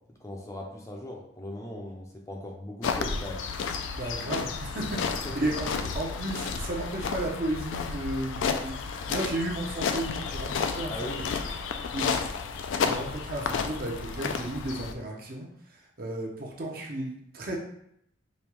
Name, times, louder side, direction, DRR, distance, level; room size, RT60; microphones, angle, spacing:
voice 1, 0.2-3.5 5.2-5.4 10.9-11.2, left 1 dB, 15° left, 0 dB, 0.5 m, -39 dB
sound 1, 2.8-14.9, left 5 dB, 80° left, 0.3 m, -32 dB
voice 2, 3.9-11.4 11.9-12.1 12.4-17.6, right 1 dB, 50° right, -1 dB, 0.7 m, -34 dB
5.1 x 2.2 x 3.0 m, 0.73 s
head